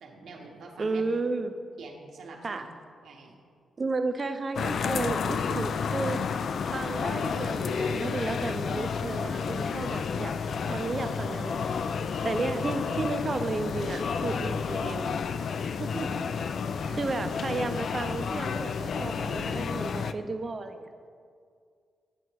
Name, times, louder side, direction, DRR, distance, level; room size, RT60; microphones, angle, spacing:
voice 1, 0.0-1.0 1.8-2.7 3.0-3.3 16.4-17.2, right 3 dB, 75° right, 0 dB, 1.3 m, -46 dB
voice 2, 0.8-1.5 2.4-2.7 3.8-6.2 6.7-10.4 10.7-11.7 12.2-15.2 15.8-16.1 16.9-20.9, right 3 dB, 30° right, 8 dB, 0.5 m, -32 dB
sound 1, 4.6-20.1, left 6 dB, 55° left, 0.3 m, -31 dB
9.9 x 5.8 x 4.7 m, 2.2 s
wide cardioid pair, 145°, 0 cm